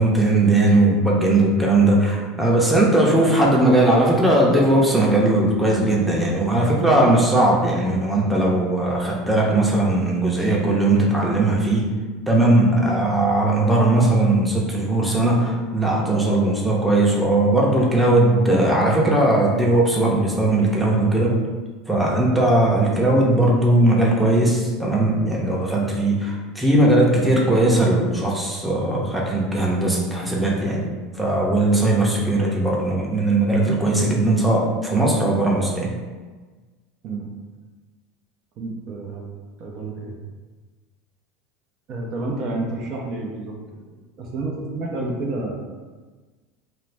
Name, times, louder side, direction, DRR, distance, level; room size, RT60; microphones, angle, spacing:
voice 1, 0.0-11.9 12.3-21.4 21.9-30.9 31.1-35.9, right 2 dB, 5° right, -4 dB, 0.6 m, -19 dB
voice 2, 38.6-39.3 39.6-40.2 41.9-43.8 44.2-45.6, right 2 dB, 50° right, -1 dB, 0.5 m, -30 dB
2.4 x 2.1 x 3.2 m, 1.3 s
hypercardioid pair, 85°, 0 cm